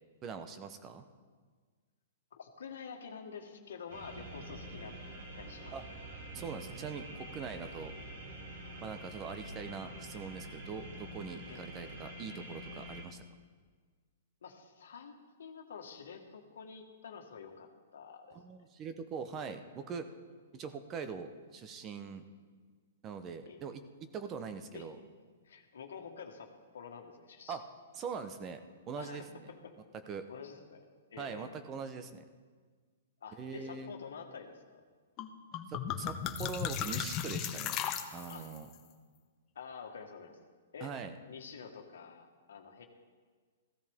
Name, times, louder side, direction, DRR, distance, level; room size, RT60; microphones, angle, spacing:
voice 1, 0.2-1.0 5.7-5.8 6.3-7.9 8.8-13.2 18.4-20.1 20.5-22.2 23.0-23.8 24.1-25.0 27.5-27.6 27.9-28.6 28.9-29.5 30.1-30.3 31.2-32.2 33.4-33.9 35.7-37.8 38.1-38.7 40.8-41.1, right 5 dB, 25° right, 9 dB, 0.9 m, -42 dB
voice 2, 2.3-5.0 5.4-5.7 11.5-11.7 14.4-15.1 15.4-18.4 23.5-23.6 24.7-24.9 25.4-27.6 29.0-29.7 30.3-31.6 33.2-34.8 38.3-38.5 39.5-40.4 40.7-40.9 41.3-42.8, left 6 dB, 75° left, 4 dB, 1.5 m, -48 dB
sound 1, 3.9-13.0, right 1 dB, 65° right, 2.3 m, -46 dB
sound 2, 35.2-35.3 35.5-38.6, left 9 dB, 30° left, 0.9 m, -36 dB
15.5 x 13.0 x 3.6 m, 1.5 s
hypercardioid pair, 130°, 0 cm